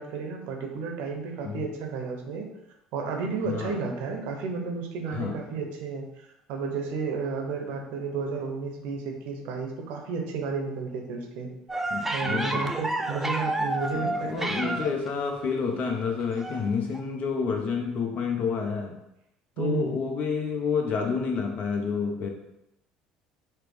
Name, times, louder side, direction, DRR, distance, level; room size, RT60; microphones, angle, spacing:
voice 1, 0.0-2.5 2.9-6.0 6.5-11.5 12.1-14.8 19.6-20.0, right 4 dB, 65° right, 2 dB, 0.7 m, -32 dB
voice 2, 3.4-3.8 5.1-5.4 11.9-12.7 13.9-19.0 19.6-22.3, left 5 dB, 50° left, 3 dB, 0.7 m, -29 dB
sound 1, 11.7-15.1 16.4-16.6 16.9-17.0, right 2 dB, 10° right, 0.4 m, -30 dB
4.2 x 2.0 x 3.3 m, 0.86 s
hypercardioid pair, 65°, 3 cm